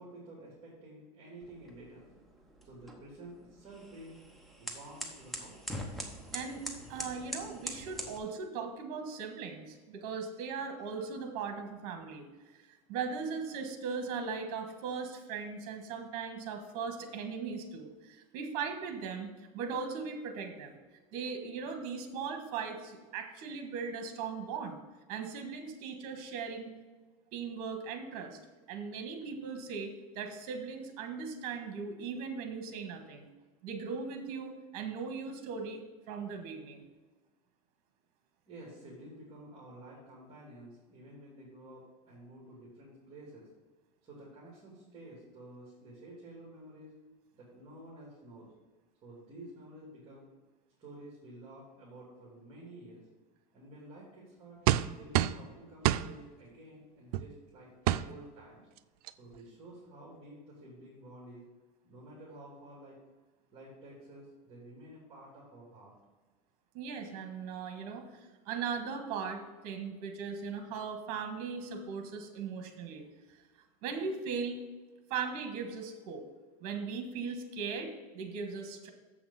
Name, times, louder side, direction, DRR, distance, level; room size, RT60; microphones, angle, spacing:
voice 1, 0.0-2.1 2.6-4.2 4.6-5.7 38.5-43.5 44.0-47.0 47.3-48.5 49.0-50.3 50.8-53.0 53.5-54.6 54.9-58.7 59.1-61.4 61.8-63.0 63.5-65.9, right 1 dB, 25° right, -6 dB, 2.9 m, -51 dB
sound 1, 1.4-8.2, equal, ahead, 1.0 m, -44 dB
voice 2, 6.3-6.6 6.9-12.3 12.9-20.8 21.1-24.8 25.1-26.7 27.3-28.4 28.7-33.3 33.6-36.9 66.7-73.4 73.8-74.6 75.1-76.2 76.6-78.9, right 5 dB, 55° right, 6 dB, 1.5 m, -38 dB
sound 2, 54.7-55.5 55.8-56.1 57.1-57.3 57.9-58.1 58.8-58.9 59.1-59.3, right 14 dB, 85° right, 0.4 m, -27 dB
7.5 x 5.9 x 5.6 m, 1.3 s
supercardioid pair, 145°, 19 cm